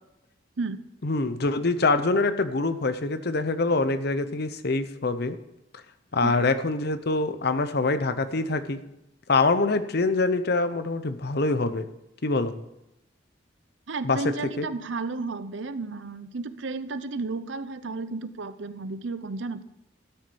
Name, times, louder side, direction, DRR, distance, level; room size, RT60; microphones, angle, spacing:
voice 1, 1.0-5.4 6.1-8.8 9.3-11.9 12.2-12.5 14.0-14.7, left 3 dB, 55° left, 11 dB, 0.8 m, -25 dB
voice 2, 13.9-19.6, right 3 dB, 75° right, 12 dB, 0.7 m, -33 dB
12.5 x 6.5 x 6.9 m, 0.87 s
head